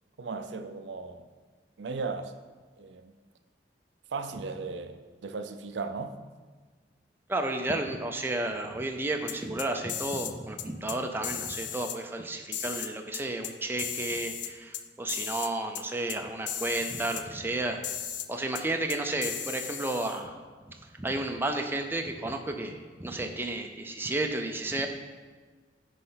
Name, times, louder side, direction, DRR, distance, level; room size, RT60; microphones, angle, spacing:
voice 1, 0.2-1.3 1.8-2.3 2.8-3.1 4.1-6.2, right 4 dB, 80° right, 8 dB, 0.5 m, -36 dB
voice 2, 7.3-17.8 18.3-20.3 21.0-24.9, right 2 dB, 10° right, 4 dB, 0.5 m, -32 dB
sound 1, 9.3-10.3 10.6-11.0 11.2-12.0 12.5-13.5 13.8-14.8 15.1-15.5 15.7-15.8 16.1-16.2 16.5-17.2 17.8-18.3 18.5-18.6 18.9-20.2, left 9 dB, 75° left, 0.4 m, -36 dB
9.6 x 3.3 x 5.6 m, 1.4 s
head